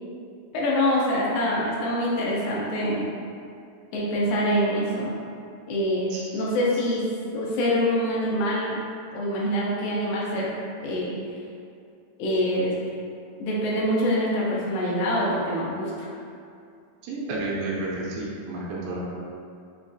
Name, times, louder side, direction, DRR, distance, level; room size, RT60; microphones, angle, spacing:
voice 1, 0.5-3.1 3.9-5.2 5.7-7.0 7.3-8.8 9.1-10.5 10.8-11.1 12.2-12.7 13.4-16.1, equal, 80° left, -5 dB, 2.2 m, -25 dB
voice 2, 17.0-19.1, right 2 dB, 80° right, -5 dB, 2.2 m, -31 dB
5.8 x 2.3 x 2.5 m, 2.4 s
omnidirectional pair, 4.3 m